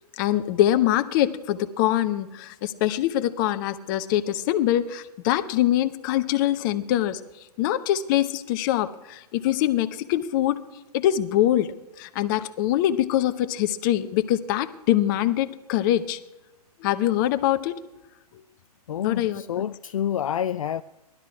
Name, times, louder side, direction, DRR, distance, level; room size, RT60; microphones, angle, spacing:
voice 1, 0.2-7.2 7.6-10.6 10.9-11.7 12.0-16.2 16.8-17.7 19.0-19.4, left 12 dB, 30° left, 0.9 m, -23 dB
voice 2, 18.9-20.8, left 9 dB, 55° left, 0.4 m, -28 dB
19.0 x 12.5 x 4.8 m
figure-of-eight pair, 125°, 20 cm